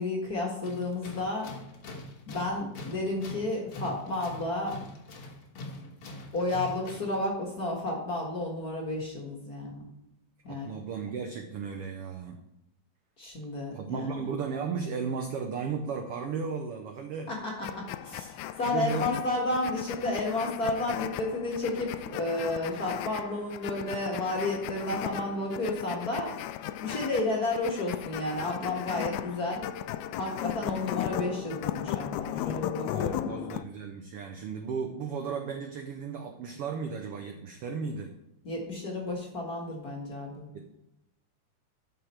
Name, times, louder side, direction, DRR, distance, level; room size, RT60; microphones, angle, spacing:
voice 1, 0.0-1.5 2.3-4.8 6.3-9.9 10.4-10.7 13.2-14.3 17.3-26.4 26.8-29.7 30.2-33.4 38.4-40.5, left 2 dB, 35° left, -1 dB, 1.7 m, -32 dB
Tools, 0.6-7.2, left 2 dB, 55° left, 1.8 m, -43 dB
voice 2, 10.5-12.4 13.7-17.3 18.6-19.2 32.9-38.1 40.5-40.7, right 6 dB, 75° right, 4 dB, 1.3 m, -35 dB
sound 1, 17.6-33.6, left 12 dB, 80° left, 1.9 m, -36 dB
12.5 x 5.4 x 4.4 m, 0.87 s
omnidirectional pair, 3.5 m